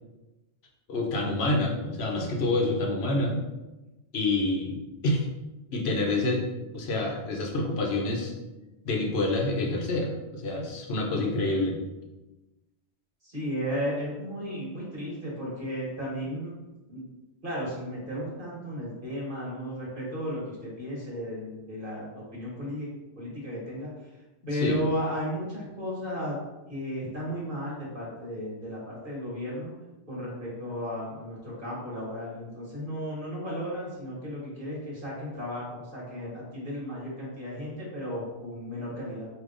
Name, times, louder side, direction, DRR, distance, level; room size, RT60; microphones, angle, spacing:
voice 1, 0.9-3.4 4.1-5.3 5.7-6.5 6.7-8.3 8.8-11.8 24.5-24.8, left 2 dB, 70° left, 0 dB, 0.9 m, -27 dB
voice 2, 13.2-16.5 16.9-17.0 17.4-22.9 23.2-23.9 24.5-26.4 26.7-29.7 30.1-39.3, equal, 50° right, -6 dB, 1.4 m, -34 dB
4.7 x 2.8 x 2.5 m, 1.1 s
omnidirectional pair, 1.1 m